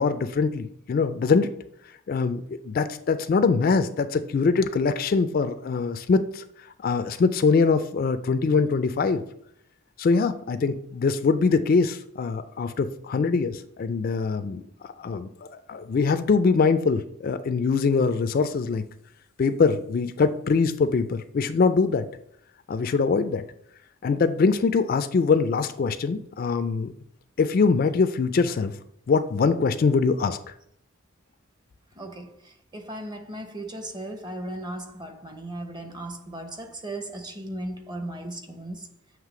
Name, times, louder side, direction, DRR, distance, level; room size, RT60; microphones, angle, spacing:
voice 1, 0.0-1.5 2.1-6.4 6.8-9.2 10.0-14.6 15.0-18.8 19.4-22.1 22.7-23.4 24.0-26.9 27.4-28.7 29.1-30.5, left 4 dB, 45° left, 0.3 m, -23 dB
voice 2, 31.9-38.9, right 1 dB, 20° right, 0.7 m, -37 dB
7.4 x 3.2 x 4.8 m
head